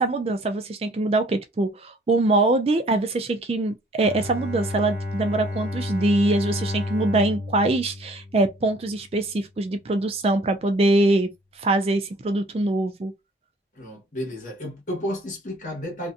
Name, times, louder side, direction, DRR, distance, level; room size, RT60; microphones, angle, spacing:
voice 1, 0.0-11.3 11.6-13.1, right 2 dB, 35° right, 0.3 m, -23 dB
Bowed string instrument, 4.0-9.0, left 2 dB, 10° right, 0.7 m, -31 dB
voice 2, 13.7-16.1, equal, 45° left, 1.2 m, -32 dB
2.6 x 2.2 x 2.4 m
head